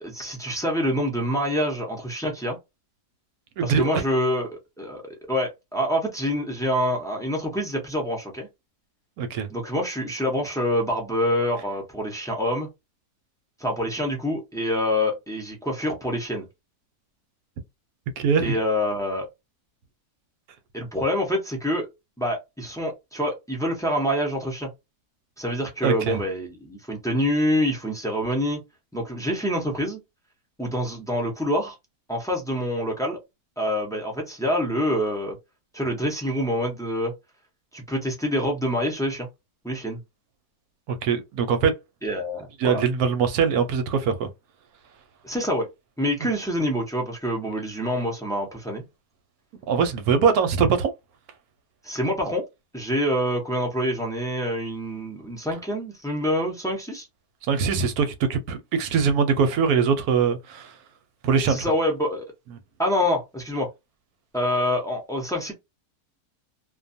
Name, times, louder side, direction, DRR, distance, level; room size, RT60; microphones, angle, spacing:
voice 1, 0.0-2.6 3.6-5.0 5.3-8.5 9.5-12.7 13.6-16.5 18.4-19.3 20.7-21.9 22.2-24.7 25.4-28.6 28.9-30.0 30.6-31.8 32.1-33.2 33.6-35.4 35.7-37.1 37.7-39.3 39.6-40.0 42.0-42.8 45.2-45.7 46.0-48.8 51.8-52.4 52.7-57.1 61.5-62.3 62.8-63.7 64.3-65.5, equal, 5° left, 0.4 m, -26 dB
voice 2, 3.6-4.0 9.2-9.5 18.2-18.6 25.8-26.2 40.9-41.7 42.6-44.3 49.7-50.9 57.4-60.7 61.2-61.6, right 6 dB, 70° right, 1.0 m, -22 dB
2.5 x 2.3 x 2.6 m
omnidirectional pair, 1.7 m